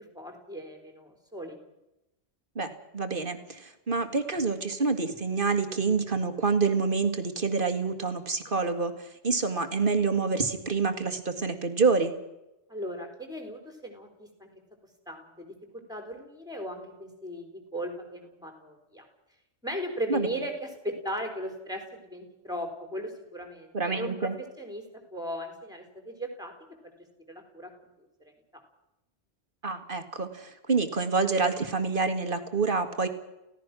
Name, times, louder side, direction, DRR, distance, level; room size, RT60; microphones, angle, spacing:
voice 1, 0.0-1.6 12.7-14.5 15.1-19.0 19.6-24.3 24.6-26.5 26.8-26.9 27.3-28.1 28.5-28.6, equal, 5° right, 4 dB, 4.2 m, -37 dB
voice 2, 2.6-12.1 20.1-20.3 23.7-24.4 29.6-33.1, right 4 dB, 55° right, 8 dB, 2.1 m, -27 dB
29.5 x 17.0 x 6.2 m, 0.92 s
omnidirectional pair, 1.1 m